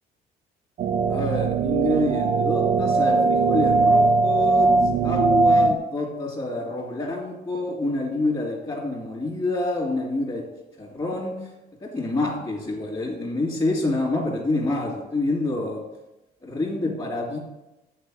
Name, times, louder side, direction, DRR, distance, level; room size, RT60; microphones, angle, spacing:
sound 1, 0.8-5.8, right 3 dB, 50° right, 0.6 m, -20 dB
voice 1, 1.1-4.7 5.0-10.4 10.8-11.3 11.8-15.8 16.4-17.4, left 2 dB, 30° left, -8 dB, 2.4 m, -27 dB
7.3 x 4.5 x 6.4 m, 0.96 s
cardioid pair, 110°, 17 cm